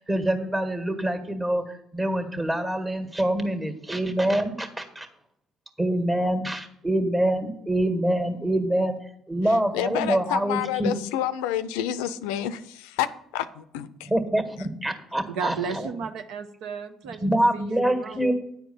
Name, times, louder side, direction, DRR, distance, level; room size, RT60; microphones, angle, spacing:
voice 1, 0.0-5.1 5.8-9.0 9.3-10.9 14.1-15.9 17.1-18.3, right 1 dB, 20° right, 6 dB, 1.7 m, -25 dB
voice 2, 9.4-14.1, left 11 dB, 85° left, 13 dB, 0.4 m, -29 dB
voice 3, 15.3-18.3, right 6 dB, 75° right, 7 dB, 0.8 m, -34 dB
9.6 x 4.5 x 7.0 m, 0.73 s
supercardioid pair, 70°, 0 cm